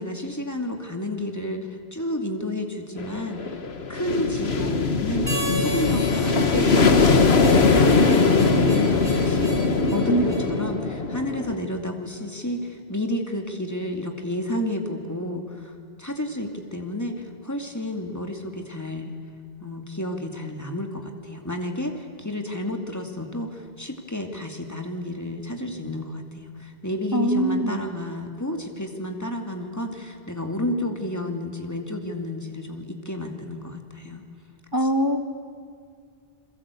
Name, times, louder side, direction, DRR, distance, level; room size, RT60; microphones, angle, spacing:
voice 1, 0.0-3.5 3.9-5.3 5.6-6.8 7.3-9.5 9.8-15.7 16.0-19.1 19.6-34.2, left 1 dB, 15° left, 4 dB, 2.3 m, -31 dB
sound 1, 3.0-11.6, left 4 dB, 80° left, 1.7 m, -21 dB
Harmonica, 5.3-10.5, equal, 85° right, 6.9 m, -34 dB
voice 2, 10.1-10.6 27.1-27.8 34.7-35.2, right 1 dB, 20° right, 7 dB, 1.6 m, -23 dB
29.5 x 22.0 x 8.4 m, 2.1 s
omnidirectional pair, 1.0 m